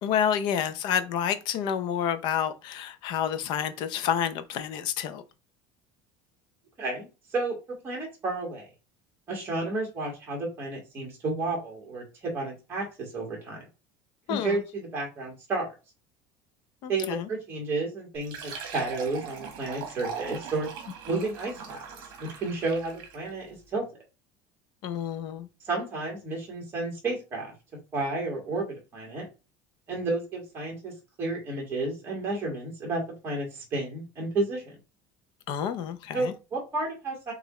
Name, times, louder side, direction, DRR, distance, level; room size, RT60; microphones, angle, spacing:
voice 1, 0.0-5.2 14.3-14.6 16.8-17.3 21.1-21.3 24.8-25.5 35.5-36.3, left 8 dB, 50° left, 0.6 m, -29 dB
voice 2, 6.8-8.7 9.3-13.6 14.3-15.7 16.9-20.7 21.1-21.8 22.2-23.8 25.6-27.5 27.9-29.3 29.9-30.9 31.2-34.8 36.1-37.3, right 2 dB, 25° right, 1.9 m, -31 dB
Fill (with liquid), 18.1-23.3, right 6 dB, 50° right, 1.5 m, -40 dB
6.6 x 2.5 x 3.1 m
cardioid pair, 175°, 10 cm